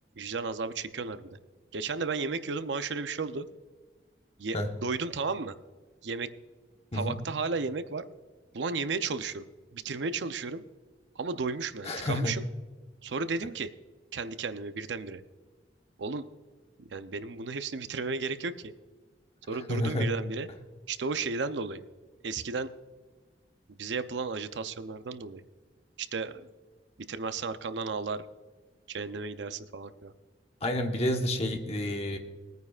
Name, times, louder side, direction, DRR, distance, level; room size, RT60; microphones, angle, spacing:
voice 1, 0.2-1.3 1.7-3.5 4.4-5.5 6.0-6.3 6.9-8.0 8.5-9.4 9.7-10.6 11.2-12.4 13.0-13.7 14.1-15.2 16.0-16.3 16.8-18.7 19.5-20.5 20.9-21.8 22.2-22.7 23.7-25.4 26.0-26.5 27.1-28.2 28.9-30.1, right 4 dB, 80° right, 11 dB, 0.6 m, -33 dB
voice 2, 11.8-12.4 19.7-20.1 30.6-32.2, left 1 dB, 35° left, 3 dB, 1.2 m, -29 dB
20.5 x 9.3 x 2.4 m, 1.3 s
head